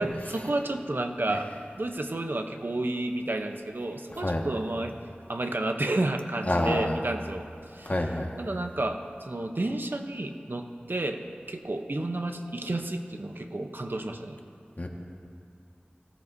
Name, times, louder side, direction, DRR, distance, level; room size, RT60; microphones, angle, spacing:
voice 1, 0.0-1.5 1.8-4.9 5.3-7.4 7.7-7.9 8.4-11.2 11.5-14.4, right 2 dB, 65° right, 5 dB, 0.8 m, -31 dB
voice 2, 6.5-6.9 7.8-8.3 14.8-14.9, left 1 dB, 45° left, 0 dB, 1.6 m, -27 dB
19.5 x 16.5 x 2.7 m, 2.6 s
wide cardioid pair, 45°, 4 cm